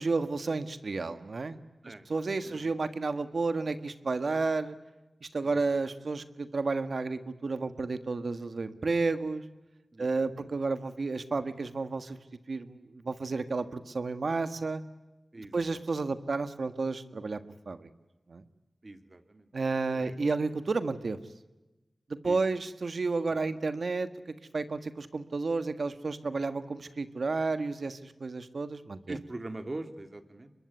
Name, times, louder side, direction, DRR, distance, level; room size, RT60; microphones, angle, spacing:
voice 1, 0.0-1.6 1.9-4.8 5.2-9.4 10.0-12.2 12.5-14.8 15.5-17.4 17.7-17.9 18.3-18.4 19.5-21.2 22.2-24.1 24.5-29.2, right 3 dB, 70° right, 11 dB, 1.5 m, -31 dB
voice 2, 5.4-5.8 9.9-10.5 15.3-15.8 18.8-20.3 22.2-22.6 23.3-23.4 29.1-30.5, right 2 dB, 45° right, 9 dB, 2.6 m, -43 dB
25.0 x 22.0 x 9.6 m, 1.1 s
cardioid pair, 45°, 0 cm